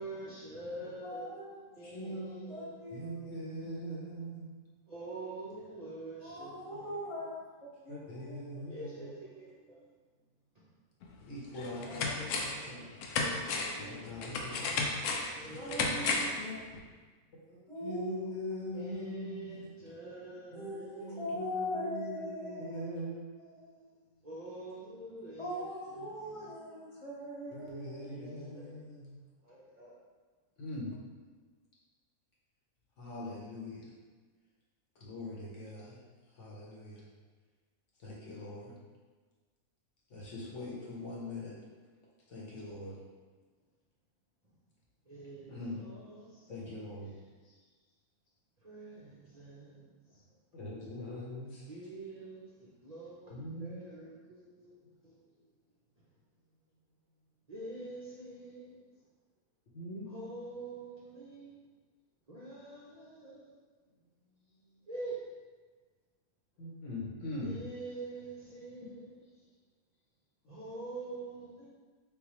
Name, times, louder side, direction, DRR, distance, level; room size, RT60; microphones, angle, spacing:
voice 1, 0.0-1.3 1.8-3.2 4.9-7.0 8.7-9.8 10.5-10.7 11.7-14.2 15.2-16.6 18.7-21.4 24.2-26.5 27.8-28.8 29.4-30.0 45.1-47.0 48.6-50.2 51.6-55.2 57.5-58.9 60.1-61.5 62.3-63.5 64.9-65.2 67.4-69.3 70.5-71.7, right 2 dB, 45° right, -7 dB, 0.5 m, -46 dB
voice 2, 1.0-1.6 2.5-3.1 6.2-8.4 8.7-9.1 15.6-16.6 17.7-18.2 20.5-22.9 23.4-24.0 25.4-29.0, left 1 dB, 25° left, -7 dB, 1.0 m, -41 dB
voice 3, 1.8-2.6 2.9-4.5 7.9-8.9 11.3-12.9 13.8-14.6 15.5-15.6 17.3-19.7 20.5-23.5 26.3-26.4 27.5-29.2 30.6-31.0 33.0-33.9 35.0-36.0 36.3-37.1 38.0-38.8 40.1-41.6 42.3-43.0 45.5-45.8 46.5-47.1 47.4-47.6 50.5-51.6 53.3-53.9 59.7-60.3 66.6-67.6, left 1 dB, 60° left, -5 dB, 1.1 m, -42 dB
sound 1, 11.0-11.1 11.6-12.7 13.0-16.4 16.7-16.8, left 4 dB, 85° left, 1.1 m, -33 dB
3.8 x 3.7 x 3.0 m, 1.4 s
omnidirectional pair, 1.6 m